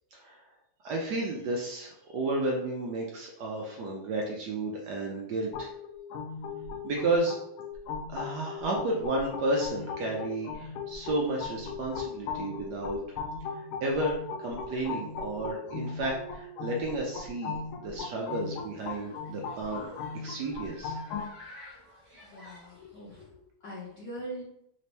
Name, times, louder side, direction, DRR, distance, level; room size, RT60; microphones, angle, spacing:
voice 1, 0.8-5.7 6.8-7.3 8.1-13.0 13.5-17.5 17.8-19.9 20.1-21.0 22.1-22.3, right 2 dB, 75° right, -1 dB, 1.0 m, -32 dB
sound 1, 5.5-21.3, left 5 dB, 80° left, 1.5 m, -38 dB
Human group actions, 18.2-23.2, left 1 dB, 30° right, 0.5 m, -53 dB
voice 2, 22.1-24.4, right 1 dB, 50° left, -9 dB, 1.5 m, -42 dB
4.0 x 2.8 x 3.3 m, 0.76 s
omnidirectional pair, 2.4 m